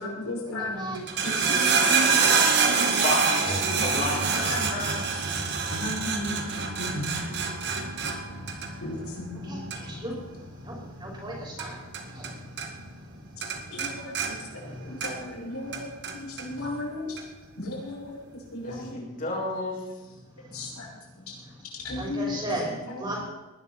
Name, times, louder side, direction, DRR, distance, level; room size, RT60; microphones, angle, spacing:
voice 1, 0.0-0.9 1.2-3.1 3.5-4.0 4.3-4.8 5.1-5.2 5.7-7.5 8.8-9.6 13.7-17.2 17.6-18.2 18.5-19.0 20.5-20.9 21.3-21.4 21.8-23.2, left 2 dB, 85° left, -2 dB, 6.2 m, -35 dB
voice 2, 0.5-1.0 2.2-2.4 9.5-10.2 10.6-11.8 12.1-12.3 22.0-23.2, right 1 dB, 20° right, -2 dB, 5.1 m, -35 dB
sound 1, 0.9-12.3 12.6-13.1 13.4-15.4 15.7-16.5 17.2-17.3, right 5 dB, 50° right, 2.1 m, -26 dB
voice 3, 3.0-5.0 18.6-19.8, left 2 dB, 40° left, -3 dB, 6.2 m, -31 dB
20.0 x 12.0 x 4.4 m, 1.2 s
head